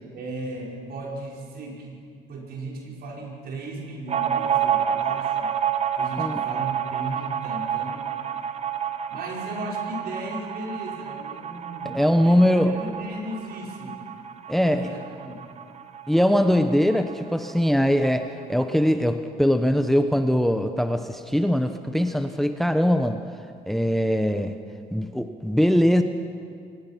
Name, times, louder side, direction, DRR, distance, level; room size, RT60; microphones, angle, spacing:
voice 1, 0.1-2.0 2.3-5.5 6.0-8.2 9.1-14.0 14.6-15.5, right 2 dB, 65° right, -2 dB, 5.3 m, -36 dB
sound 1, 4.1-17.2 17.5-17.6 17.9-18.6, right 9 dB, 40° right, 1.2 m, -29 dB
voice 2, 11.8-12.8 14.5-15.0 16.1-23.2 23.7-24.6 24.9-26.0, equal, ahead, 8 dB, 0.9 m, -21 dB
23.5 x 19.5 x 5.8 m, 2.3 s
cardioid pair, 90°, 17 cm